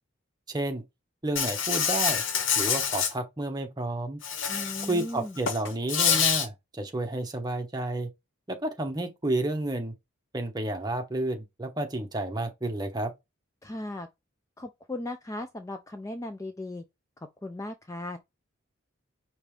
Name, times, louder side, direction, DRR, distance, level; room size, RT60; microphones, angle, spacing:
voice 1, 0.5-0.8 1.2-2.2 2.6-4.2 4.9-8.1 8.5-9.9 10.3-13.1, right 2 dB, 20° right, 0.8 m, -31 dB
Insect, 1.4-3.1 4.2-5.0 5.4-6.5, left 7 dB, 65° left, 0.9 m, -26 dB
voice 2, 4.5-5.3 13.6-14.1 14.6-16.8 17.4-18.2, left 1 dB, 15° left, 0.3 m, -37 dB
5.2 x 2.9 x 3.2 m
head